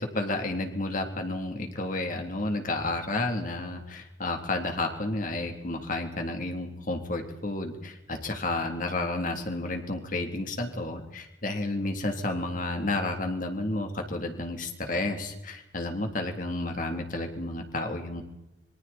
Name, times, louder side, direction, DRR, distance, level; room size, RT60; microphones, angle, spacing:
voice 1, 0.0-18.2, left 2 dB, 50° left, 4 dB, 3.3 m, -31 dB
26.0 x 24.0 x 4.4 m, 0.93 s
head